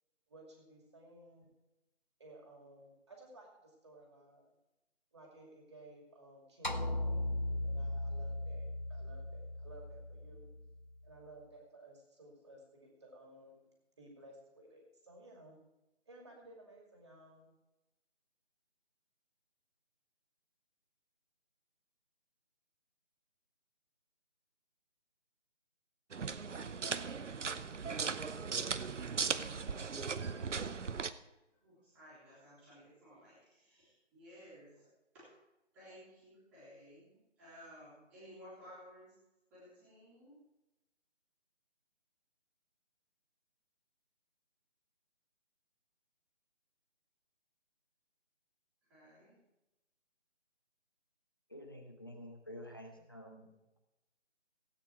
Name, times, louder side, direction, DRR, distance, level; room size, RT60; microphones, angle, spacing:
voice 1, 0.3-1.5 2.2-4.5 5.1-10.5 11.0-13.7 14.0-15.6 16.1-17.5, right 1 dB, 25° right, 0 dB, 2.5 m, -57 dB
sound 1, 6.6-11.1, left 1 dB, 40° left, 0.5 m, -38 dB
sound 2, 26.1-31.1, right 5 dB, 75° right, 0.9 m, -38 dB
voice 2, 31.6-34.9 35.1-35.4 35.7-39.1 39.5-40.4 48.9-49.4, equal, 5° right, -11 dB, 2.6 m, -56 dB
voice 3, 51.5-53.5, equal, 20° left, 2 dB, 1.0 m, -49 dB
17.5 x 8.9 x 4.5 m, 0.97 s
figure-of-eight pair, 175°, 36 cm